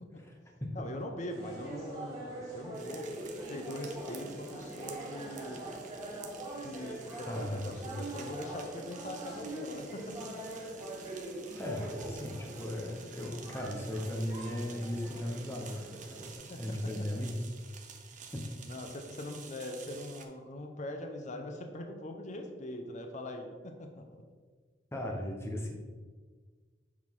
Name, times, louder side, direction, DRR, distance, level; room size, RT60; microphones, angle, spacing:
voice 1, 0.7-3.1 3.5-5.6 6.6-10.3 16.5-16.6 18.7-24.2, left 1 dB, 40° left, 4 dB, 0.6 m, -42 dB
sound 1, 1.3-16.4, right 1 dB, 20° right, 1.7 m, -43 dB
sound 2, 2.7-20.3, right 6 dB, 40° right, 0.6 m, -51 dB
voice 2, 7.3-8.0 11.6-17.5 18.3-18.5 24.9-25.8, left 1 dB, 15° left, 0 dB, 0.8 m, -37 dB
7.3 x 4.0 x 3.6 m, 1.5 s
head